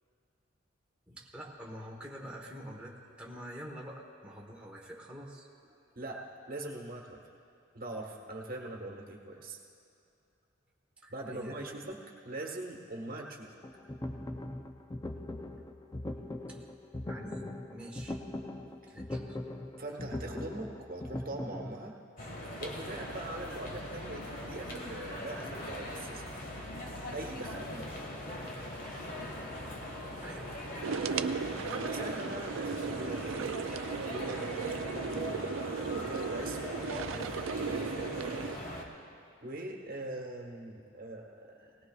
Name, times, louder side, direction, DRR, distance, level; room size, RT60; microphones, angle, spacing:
voice 1, 1.1-5.8 11.0-11.6 16.5-16.7 17.1-18.2 18.9-19.4 30.2-30.5 37.1-37.3, equal, 5° right, -3 dB, 1.1 m, -47 dB
voice 2, 5.9-7.2 7.7-9.6 11.1-12.0 12.2-13.5 18.8-18.9 19.8-22.0 22.6-26.4 27.1-28.0 31.7-33.7 34.1-38.6 39.4-41.8, right 2 dB, 45° right, 0 dB, 1.3 m, -42 dB
sound 1, 13.6-21.8, left 1 dB, 20° left, 0.5 m, -40 dB
sound 2, 22.2-38.8, left 1 dB, 45° left, 1.6 m, -40 dB
sound 3, 30.8-38.6, right 6 dB, 75° right, 0.4 m, -36 dB
19.5 x 18.5 x 2.4 m, 2.6 s
head